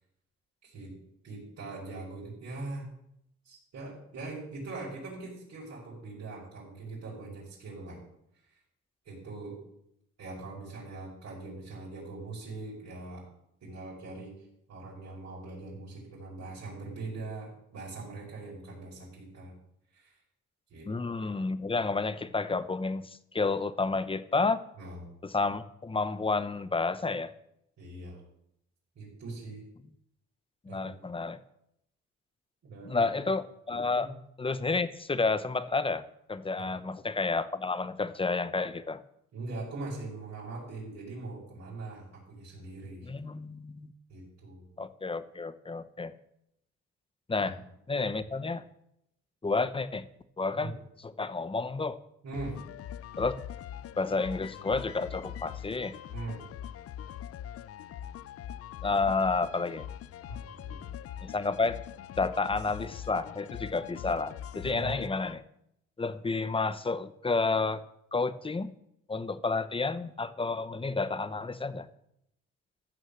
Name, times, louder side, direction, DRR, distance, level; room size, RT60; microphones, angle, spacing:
voice 1, 0.6-0.9 1.2-2.9 3.4-8.0 8.5-8.6 9.1-9.6 10.2-13.3 13.6-19.5 19.9-20.2 20.7-20.9 24.8-25.0 27.8-28.2 29.0-29.6 30.7-30.9 32.6-33.1 34.0-34.1 36.6-36.7 39.3-43.1 44.1-44.6 47.4-47.5 50.6-50.7 52.2-52.6 56.1-56.4 60.3-60.4 60.6-60.8 64.6-65.0, right 3 dB, 60° right, -7 dB, 5.5 m, -41 dB
voice 2, 20.8-24.6 25.3-27.3 30.6-31.4 32.8-34.1 34.4-36.0 36.3-39.0 43.0-43.9 44.8-46.1 47.3-47.6 47.9-48.6 49.4-50.1 50.4-50.7 51.0-52.0 53.2-53.3 54.0-55.9 58.8-59.9 61.2-61.8 62.2-65.4 66.0-67.8 68.1-68.7 69.1-71.9, left 3 dB, 20° left, 14 dB, 0.8 m, -30 dB
sound 1, 52.3-65.3, left 10 dB, 50° left, 0.4 m, -42 dB
14.5 x 6.4 x 6.5 m, 0.77 s
cardioid pair, 90°, 30 cm